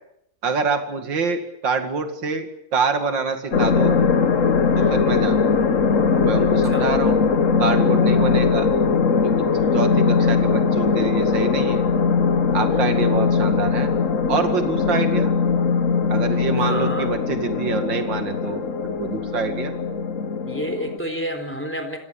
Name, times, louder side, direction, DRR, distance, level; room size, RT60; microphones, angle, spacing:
voice 1, 0.4-4.0 4.8-5.5 6.2-7.2 7.6-8.7 9.2-9.5 9.7-11.8 12.5-13.9 14.3-15.4 16.1-19.7, right 5 dB, 75° right, 7 dB, 2.9 m, -26 dB
sound 1, 3.5-21.0, left 5 dB, 45° left, 1.5 m, -20 dB
voice 2, 6.6-6.9 9.5-9.8 12.7-13.3 16.6-17.1 20.5-22.0, equal, 5° left, 7 dB, 3.7 m, -31 dB
27.0 x 17.0 x 8.7 m, 0.77 s
omnidirectional pair, 2.0 m